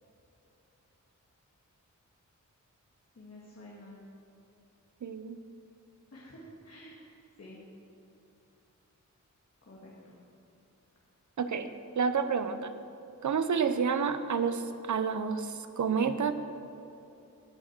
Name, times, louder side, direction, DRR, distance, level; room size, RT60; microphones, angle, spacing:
voice 1, 3.2-4.0 6.1-7.1 7.4-7.6 9.6-10.2, left 1 dB, 50° left, -5 dB, 2.2 m, -50 dB
voice 2, 5.0-5.4 11.4-11.7 12.0-12.7 13.2-16.3, right 6 dB, 70° right, 10 dB, 0.7 m, -29 dB
18.5 x 6.5 x 6.1 m, 2.8 s
wide cardioid pair, 115°, 31 cm